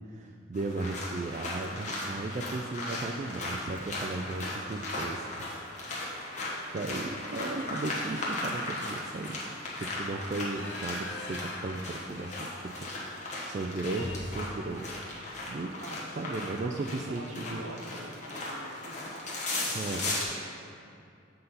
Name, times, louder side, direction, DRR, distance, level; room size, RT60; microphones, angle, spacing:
voice 1, 0.1-5.5 6.0-6.3 6.7-9.5 9.7-13.0 13.4-14.9 15.5-15.8 16.2-17.6 19.7-20.1, right 2 dB, 40° right, 2 dB, 0.3 m, -36 dB
sound 1, 0.5-20.2, left 2 dB, 40° left, 1.3 m, -37 dB
sound 2, 5.7-6.1 6.5-6.7 7.0-13.1 13.4-13.5 13.9-16.0 17.4-17.6 18.0-18.2 18.5-19.1, left 2 dB, 70° left, 0.9 m, -45 dB
voice 2, 15.7-16.3 16.9-19.2 19.8-20.3 20.6-20.7, right 1 dB, 75° right, 2 dB, 0.8 m, -45 dB
7.9 x 3.9 x 5.5 m, 2.4 s
head